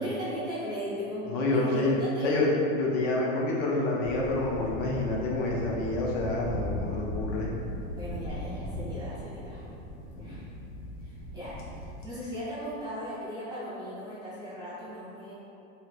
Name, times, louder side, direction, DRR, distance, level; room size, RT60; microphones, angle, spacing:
voice 1, 0.0-2.4 7.9-9.6 10.2-10.5 11.0-11.6 12.0-15.3, equal, 10° right, -12 dB, 0.5 m, -37 dB
voice 2, 1.3-2.0 2.2-7.5 10.1-10.4, left 2 dB, 45° left, -3 dB, 0.6 m, -28 dB
sound 1, 4.0-12.1, equal, 70° left, 1.0 m, -38 dB
2.8 x 2.4 x 3.1 m, 2.7 s
hypercardioid pair, 120°, 39 cm